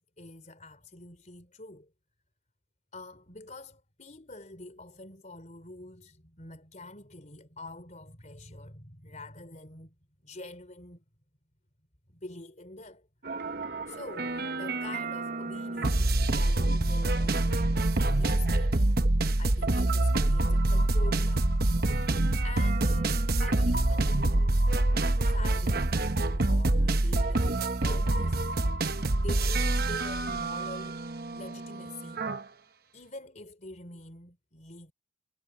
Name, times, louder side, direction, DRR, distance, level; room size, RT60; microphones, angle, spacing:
voice 1, 0.0-1.9 2.9-10.0 10.2-11.0 12.1-13.1 13.4-13.5 13.9-17.7 18.0-18.9 19.4-21.5 22.4-24.7 25.2-28.4 29.2-32.2 32.9-34.9, left 2 dB, 35° left, 3.9 m, -46 dB
sound 1, 13.3-32.4, right 2 dB, 50° right, 1.0 m, -26 dB
head